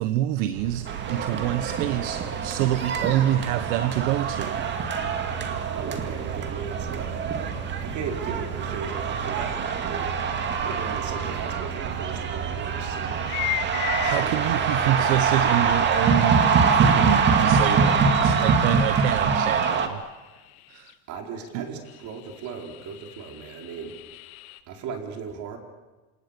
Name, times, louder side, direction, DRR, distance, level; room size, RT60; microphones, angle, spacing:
voice 1, 0.0-4.6 14.0-20.0 20.7-20.9 21.5-21.7, right 13 dB, 65° right, 11 dB, 1.3 m, -27 dB
sound 1, 0.5-19.4, right 8 dB, 90° right, 2.5 m, -36 dB
sound 2, 0.9-19.9, right 5 dB, 25° right, 2.2 m, -25 dB
voice 2, 5.7-7.2 7.8-10.1 10.6-13.4 14.0-15.2 21.1-23.9 24.7-25.6, right 5 dB, 40° right, 2 dB, 4.7 m, -37 dB
sound 3, 11.2-11.3 12.1-12.2 13.0-14.3 15.4-15.5 16.7-21.0 21.4-21.5 21.9-24.6, left 17 dB, 80° left, 1.8 m, -37 dB
28.5 x 27.5 x 6.9 m, 1.2 s
supercardioid pair, 150°, 42 cm